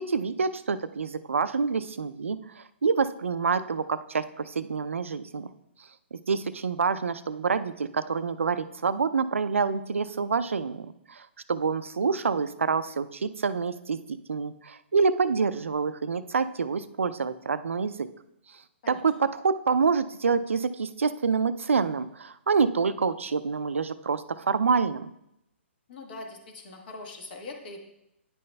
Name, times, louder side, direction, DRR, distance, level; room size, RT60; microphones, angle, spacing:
voice 1, 0.0-5.5 6.1-18.1 18.9-25.1, right 5 dB, 85° right, 13 dB, 0.4 m, -27 dB
voice 2, 25.9-27.8, left 3 dB, 50° left, 2 dB, 1.3 m, -42 dB
9.8 x 5.4 x 2.2 m, 0.82 s
hypercardioid pair, 130°, 7 cm